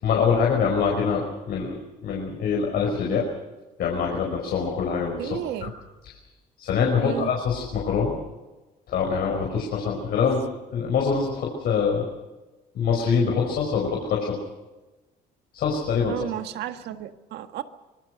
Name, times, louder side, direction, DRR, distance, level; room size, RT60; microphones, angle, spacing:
voice 1, 0.0-3.2 3.8-5.7 6.6-8.1 8.9-10.4 10.7-12.1 12.7-14.4 15.5-16.3, left 6 dB, 65° left, 0 dB, 5.2 m, -24 dB
voice 2, 5.2-5.7 7.0-7.3 16.1-17.6, right 11 dB, 80° right, 9 dB, 1.7 m, -32 dB
25.0 x 20.5 x 6.4 m, 1.1 s
cardioid pair, 110°, 17 cm